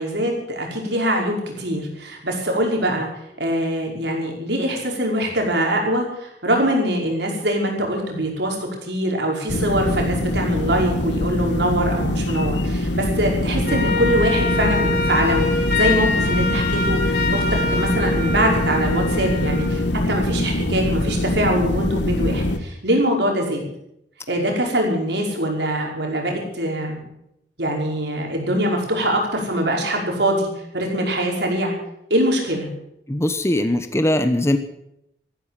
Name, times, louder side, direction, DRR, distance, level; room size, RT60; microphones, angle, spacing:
voice 1, 0.0-3.1 3.4-8.6 8.8-19.8 20.1-23.6 24.3-27.0 27.6-30.5 30.7-31.7 32.1-32.7, right 1 dB, 70° right, 1 dB, 5.4 m, -23 dB
sound 1, 9.5-22.6, left 1 dB, 80° left, 1.4 m, -23 dB
Wind instrument woodwind instrument, 13.6-19.7, left 3 dB, 60° left, 4.2 m, -25 dB
voice 2, 33.1-34.6, left 1 dB, 15° left, 9 dB, 1.0 m, -20 dB
14.5 x 13.0 x 7.5 m, 0.78 s
head